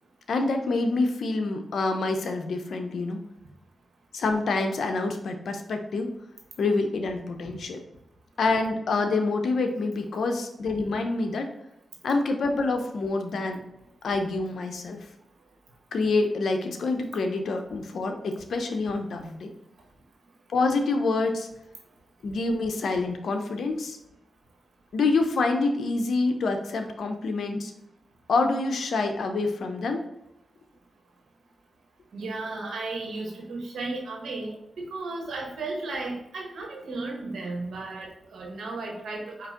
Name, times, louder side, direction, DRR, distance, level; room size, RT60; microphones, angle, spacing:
voice 1, 0.3-3.2 4.1-6.1 6.6-7.8 8.4-11.5 12.0-13.6 14.0-15.0 15.9-19.5 20.5-21.5 22.2-24.0 24.9-27.7 28.3-30.0, left 3 dB, 75° left, 5 dB, 0.6 m, -26 dB
voice 2, 32.1-34.5 34.9-39.5, right 3 dB, 80° right, 0 dB, 1.1 m, -34 dB
4.7 x 2.9 x 3.7 m, 0.85 s
cardioid pair, 50°, 0 cm